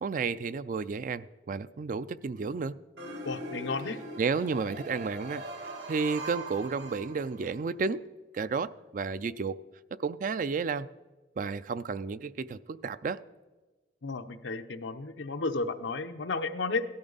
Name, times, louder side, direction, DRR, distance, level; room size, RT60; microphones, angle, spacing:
voice 1, 0.0-2.8 4.2-5.4 5.9-8.0 8.3-9.6 10.0-10.9 11.4-13.2, right 4 dB, 45° right, 15 dB, 0.4 m, -32 dB
sound 1, 3.0-7.6, right 1 dB, 75° right, 2.3 m, -41 dB
voice 2, 3.2-4.0 14.0-16.8, left 3 dB, 90° left, 8 dB, 0.8 m, -33 dB
17.0 x 12.5 x 4.0 m, 1.2 s
head